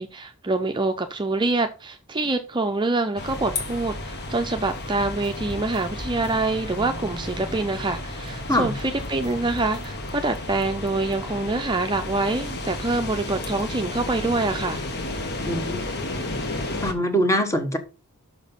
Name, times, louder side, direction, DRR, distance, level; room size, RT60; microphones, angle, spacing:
voice 1, 0.0-14.8, right 2 dB, 20° right, 0.6 m, -25 dB
sound 1, 3.2-16.9, left 2 dB, 50° left, 1.3 m, -32 dB
sound 2, 5.0-8.7 9.0-9.9, right 1 dB, 5° right, 1.5 m, -41 dB
voice 2, 15.5-15.8 16.8-17.8, equal, 15° left, 1.2 m, -23 dB
6.3 x 5.9 x 5.4 m
head